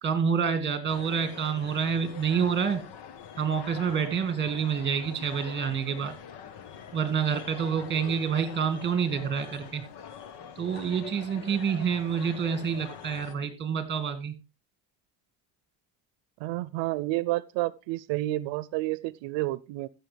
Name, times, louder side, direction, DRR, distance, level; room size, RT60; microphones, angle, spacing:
voice 1, 0.0-2.8 3.4-6.1 6.9-9.8 10.6-14.3, right 7 dB, 25° right, 10 dB, 2.0 m, -28 dB
sound 1, 0.9-13.3, left 8 dB, 65° left, 1.3 m, -44 dB
voice 2, 16.4-19.9, right 18 dB, 90° right, 19 dB, 0.6 m, -30 dB
15.5 x 6.9 x 3.3 m, 0.26 s
cardioid pair, 135°, 43 cm